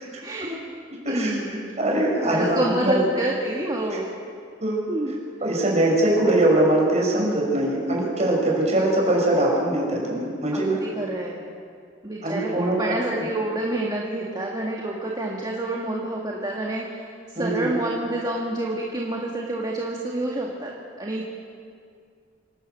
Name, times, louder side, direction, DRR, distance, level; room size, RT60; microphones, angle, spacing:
voice 1, 0.2-0.6 1.1-1.6 2.2-4.1 4.9-5.2 5.5-5.6 10.5-11.4 12.0-21.3, right 1 dB, 20° right, -2 dB, 1.9 m, -28 dB
voice 2, 1.0-1.4 1.8-3.0 4.6-4.8 5.4-10.8 12.2-12.8 13.1-13.2 17.4-17.7, right 1 dB, 35° right, -2 dB, 6.3 m, -22 dB
27.0 x 12.0 x 8.2 m, 2.2 s
head